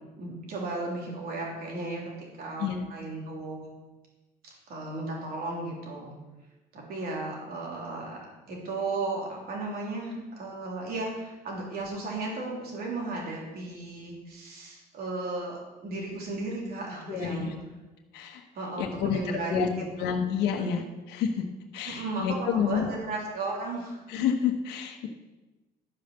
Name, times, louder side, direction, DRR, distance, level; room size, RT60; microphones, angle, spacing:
voice 1, 0.2-3.7 4.4-6.2 6.7-17.6 18.5-19.7 20.0-20.2 20.6-20.7 21.8-24.0, right 2 dB, 65° right, -2 dB, 3.4 m, -35 dB
voice 2, 17.1-17.5 18.1-18.4 18.8-19.2 19.5-19.7 20.0-20.8 21.1-21.4 21.7-22.9 24.1-25.1, left 7 dB, 85° left, 3 dB, 1.1 m, -28 dB
12.0 x 5.3 x 6.7 m, 1.1 s
cardioid pair, 110°, 17 cm